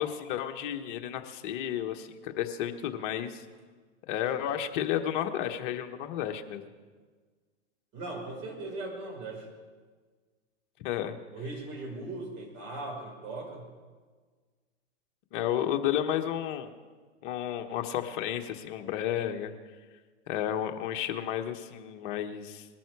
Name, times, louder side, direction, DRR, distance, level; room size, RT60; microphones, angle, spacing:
voice 1, 0.0-3.4 4.1-6.6 10.8-11.2 15.3-16.7 17.2-19.5 20.3-22.7, left 10 dB, 45° left, 5 dB, 1.3 m, -32 dB
voice 2, 7.9-9.5 11.3-13.7, right 2 dB, 35° right, 1 dB, 5.3 m, -39 dB
21.0 x 13.5 x 4.8 m, 1.5 s
hypercardioid pair, 130°, 36 cm